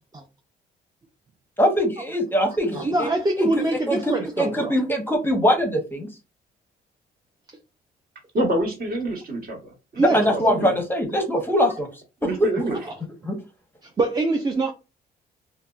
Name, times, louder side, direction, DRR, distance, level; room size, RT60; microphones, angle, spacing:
voice 1, 1.6-3.1 3.4-3.5 3.9-6.1 10.0-11.9 12.2-12.5 13.3-13.4, equal, 10° left, 0.7 m, -22 dB
voice 2, 2.7-4.7 10.0-10.2 12.7-13.0 13.8-14.7, right 2 dB, 20° right, 0.4 m, -24 dB
voice 3, 8.3-9.7 10.3-10.7 12.2-12.8, right 1 dB, 50° right, 1.1 m, -26 dB
2.5 x 2.1 x 2.3 m
supercardioid pair, 75°, 19 cm